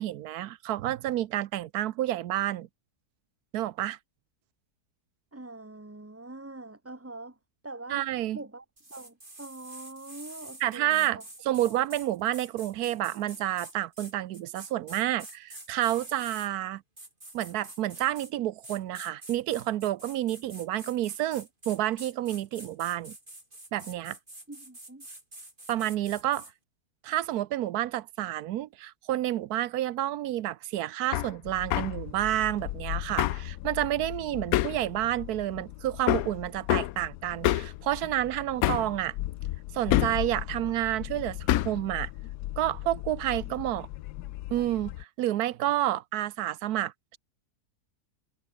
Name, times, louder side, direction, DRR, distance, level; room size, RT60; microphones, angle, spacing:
voice 1, 0.0-2.7 3.5-4.0 7.9-8.4 10.6-11.2 11.5-16.8 17.3-23.1 23.7-24.2 25.7-26.5 27.0-39.1 39.7-42.1 42.6-43.9 44.5-47.2, right 13 dB, 75° right, 1.2 m, -29 dB
voice 2, 5.3-7.4 7.6-8.1 8.3-8.6 8.9-11.2 11.5-11.7 24.5-25.1, right 2 dB, 10° right, 1.1 m, -44 dB
sound 1, 8.8-16.5 17.0-18.3 18.6-26.5, right 1 dB, 30° right, 5.6 m, -47 dB
Hammer, 31.1-31.3 31.7-32.0 33.2-33.5 34.5-34.8 36.1-36.3 36.7-36.9 37.4-37.8 38.6-38.9 39.9-40.2 41.5-41.8, left 14 dB, 70° left, 1.0 m, -25 dB
sound 2, 31.4-45.0, left 15 dB, 90° left, 1.2 m, -39 dB
omnidirectional pair, 1.7 m